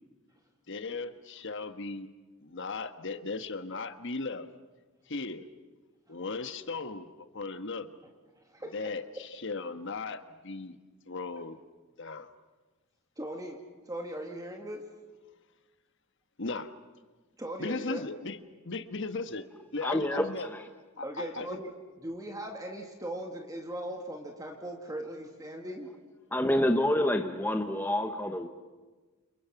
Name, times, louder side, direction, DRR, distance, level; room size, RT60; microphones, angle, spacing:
voice 1, 0.7-2.1 2.4-4.5 5.1-5.4 6.1-7.1 7.3-7.9 8.7-10.8 11.1-11.6 12.0-12.3 16.4-16.7 17.6-18.4 18.6-19.5 19.7-20.5 21.0-21.6, left 3 dB, 60° left, 1.3 m, -37 dB
voice 2, 8.4-8.8 13.2-13.6 13.9-14.9 17.4-18.0 21.0-21.7 22.0-25.9, right 1 dB, 15° right, 2.1 m, -39 dB
voice 3, 19.8-20.7 26.3-28.5, left 1 dB, 10° left, 1.0 m, -28 dB
29.0 x 28.5 x 6.0 m
head